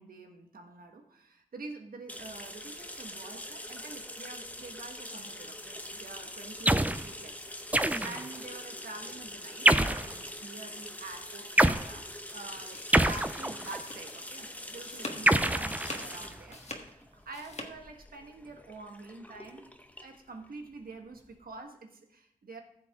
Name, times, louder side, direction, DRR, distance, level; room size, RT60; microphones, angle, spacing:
voice 1, 0.0-12.8 13.1-19.7 20.0-22.6, right 3 dB, 85° right, 4 dB, 1.3 m, -47 dB
sound 1, 2.1-21.5, left 1 dB, 10° left, 0.8 m, -44 dB
sound 2, 6.7-7.1 7.7-8.3 9.7-10.1 11.6-11.9 12.9-13.8 15.3-16.3, right 1 dB, 10° right, 0.4 m, -25 dB
sound 3, 12.4-14.3 14.7-15.3 15.6-17.7, left 2 dB, 50° left, 1.4 m, -43 dB
15.0 x 6.9 x 3.5 m, 0.72 s
wide cardioid pair, 75°, 15 cm